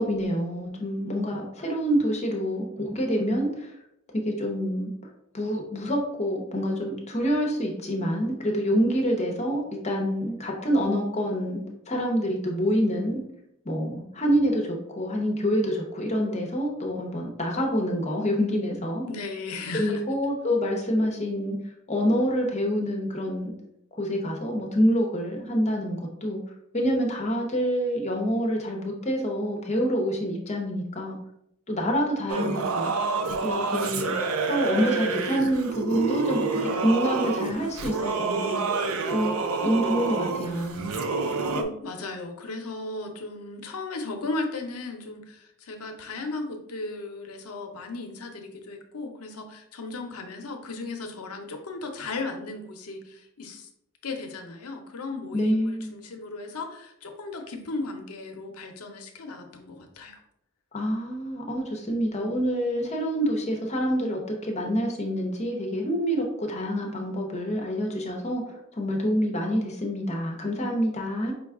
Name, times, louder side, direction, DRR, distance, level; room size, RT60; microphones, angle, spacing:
voice 1, 0.0-3.7 4.1-4.9 5.3-11.6 11.9-13.2 13.6-19.1 19.7-21.6 21.9-23.5 23.9-26.4 26.7-31.2 31.7-32.9 33.4-34.1 34.5-38.6 39.1-39.3 39.6-40.9 55.3-55.9 60.7-71.3, equal, 30° left, 1 dB, 0.8 m, -27 dB
voice 2, 19.1-20.0 41.2-53.7 54.0-60.2, left 3 dB, 85° left, 4 dB, 0.7 m, -36 dB
Singing / Musical instrument, 32.3-41.6, right 4 dB, 70° right, 0.5 m, -28 dB
5.1 x 2.3 x 3.6 m, 0.77 s
head